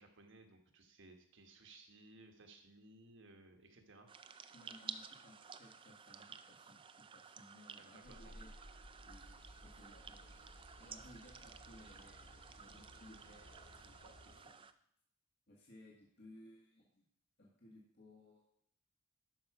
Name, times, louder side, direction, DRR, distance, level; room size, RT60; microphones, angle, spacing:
voice 1, 0.0-4.1 7.8-8.3, right 2 dB, 55° right, 4 dB, 1.3 m, -60 dB
sound 1, 4.1-14.7, right 6 dB, 25° right, 0.4 m, -54 dB
voice 2, 4.5-8.5 9.0-10.4 10.7-14.6 15.5-17.1 17.4-18.4, left 1 dB, 50° left, -4 dB, 1.8 m, -61 dB
sound 2, 8.0-14.4, equal, 65° left, 2.6 m, -58 dB
12.0 x 5.7 x 4.8 m, 0.70 s
head